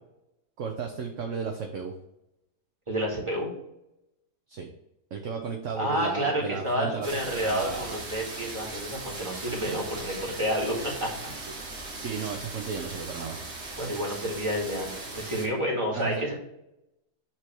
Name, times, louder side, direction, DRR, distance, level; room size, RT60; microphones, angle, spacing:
voice 1, 0.6-1.9 4.5-4.7 5.1-8.0 9.6-9.8 11.5-11.6 12.0-13.4 15.9-16.3, right 6 dB, 60° right, 3 dB, 1.0 m, -34 dB
voice 2, 2.9-3.5 5.7-11.1 13.8-16.3, equal, 20° right, -2 dB, 2.0 m, -29 dB
sound 1, 7.0-15.5, right 2 dB, 85° right, 2.2 m, -39 dB
7.5 x 3.4 x 5.9 m, 0.87 s
omnidirectional pair, 1.7 m